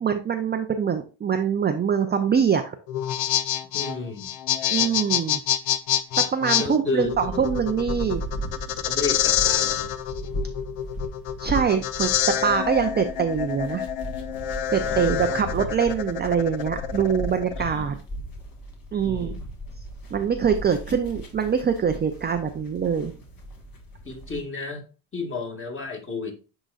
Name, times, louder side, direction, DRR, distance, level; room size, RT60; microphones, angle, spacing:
voice 1, 0.0-2.8 4.7-5.4 6.2-8.2 11.4-12.1 12.4-13.9 14.7-18.0 18.9-19.4 20.1-23.1, right 7 dB, 20° right, 6 dB, 0.4 m, -24 dB
sound 1, 2.9-17.6, left 11 dB, 65° left, 0.7 m, -27 dB
voice 2, 3.7-4.3 6.6-7.3 8.8-9.9 14.8-15.3 17.6-17.9 19.0-19.4 24.0-24.9 25.1-26.3, left 3 dB, 25° left, 2 dB, 1.9 m, -32 dB
sound 2, 7.0-24.4, right 1 dB, 45° left, 1.7 m, -36 dB
10.0 x 4.0 x 2.4 m, 0.34 s
cardioid pair, 105°, 48 cm